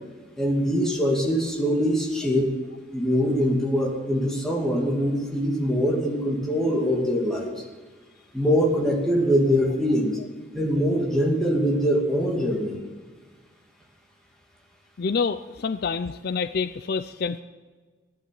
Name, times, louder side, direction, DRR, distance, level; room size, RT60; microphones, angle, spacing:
voice 1, 0.4-2.5 2.9-7.6 8.3-10.2 10.5-12.8, equal, 5° left, -2 dB, 2.4 m, -23 dB
voice 2, 15.0-17.4, left 5 dB, 55° left, 12 dB, 0.4 m, -27 dB
15.0 x 11.0 x 7.6 m, 1.4 s
head